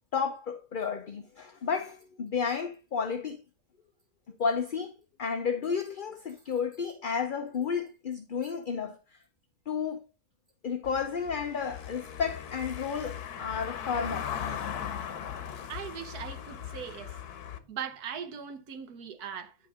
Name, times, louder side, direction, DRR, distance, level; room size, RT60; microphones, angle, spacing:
voice 1, 0.1-3.4 4.4-4.9 5.2-9.2 9.7-10.0 10.6-14.3, left 6 dB, 45° left, 0.8 m, -32 dB
Car passing by / Engine, 10.8-17.6, left 9 dB, 85° left, 1.5 m, -38 dB
voice 2, 15.7-17.1 17.7-19.6, right 7 dB, 85° right, 1.5 m, -39 dB
9.8 x 5.6 x 3.6 m
omnidirectional pair, 1.6 m